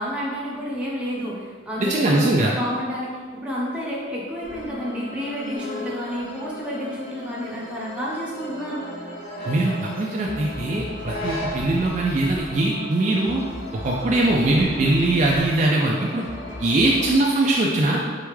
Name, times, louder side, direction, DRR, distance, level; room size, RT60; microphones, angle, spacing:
voice 1, 0.0-8.8, equal, 5° right, -6 dB, 0.8 m, -30 dB
voice 2, 1.8-2.5 9.4-13.4 13.8-16.2 16.6-18.0, right 2 dB, 40° right, -2 dB, 0.4 m, -21 dB
sound 1, 4.4-17.1, left 1 dB, 85° left, 1.4 m, -37 dB
sound 2, 5.5-11.9, left 1 dB, 50° left, 1.1 m, -37 dB
4.0 x 3.4 x 3.2 m, 1.6 s
head